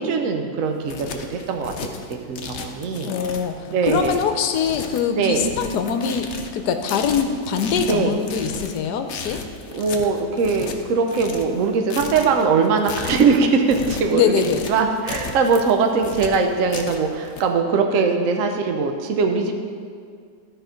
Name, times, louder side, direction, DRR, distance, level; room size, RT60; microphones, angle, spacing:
voice 1, 0.0-1.7 2.1-3.1 3.7-4.1 5.2-5.4 7.9-8.1 9.3-9.4 9.7-14.3 14.7-19.5, right 4 dB, 60° right, 4 dB, 1.0 m, -21 dB
sound 1, 0.6-17.4, left 5 dB, 55° left, 0.8 m, -35 dB
voice 2, 3.0-9.4 14.1-14.7, left 7 dB, 75° left, 7 dB, 1.2 m, -23 dB
13.0 x 4.5 x 5.1 m, 2.1 s
omnidirectional pair, 1.8 m